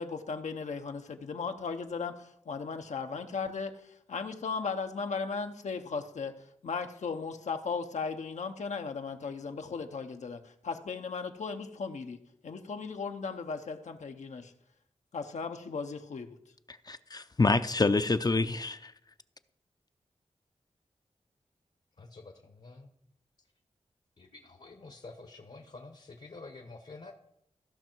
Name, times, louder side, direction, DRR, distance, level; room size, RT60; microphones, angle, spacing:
voice 1, 0.0-3.7 4.1-6.3 6.6-12.2 12.4-14.5 15.1-16.4, left 5 dB, 80° left, 0.9 m, -36 dB
voice 2, 16.9-18.9, left 3 dB, 35° left, 0.5 m, -27 dB
voice 3, 22.0-22.9 23.4-23.5 24.2-27.1, left 3 dB, 60° left, 1.1 m, -49 dB
15.0 x 5.6 x 4.5 m
cardioid pair, 55°, 12 cm